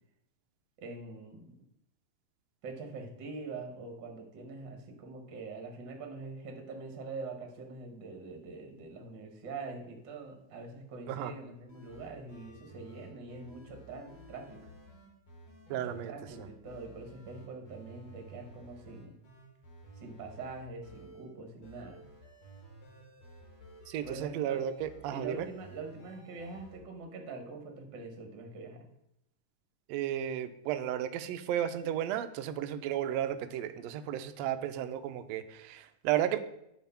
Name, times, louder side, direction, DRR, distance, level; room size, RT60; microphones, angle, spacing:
voice 1, 0.8-1.6 2.6-14.7 15.7-19.1 20.0-22.0 24.0-24.6 25.1-28.9, right 3 dB, 55° right, 3 dB, 1.4 m, -44 dB
sound 1, 11.6-21.3 21.6-26.8, right 2 dB, 60° left, 3.2 m, -54 dB
voice 2, 15.7-16.1 23.9-25.5 29.9-36.4, right 11 dB, 80° right, 9 dB, 1.6 m, -33 dB
10.5 x 3.7 x 5.6 m, 0.81 s
omnidirectional pair, 3.4 m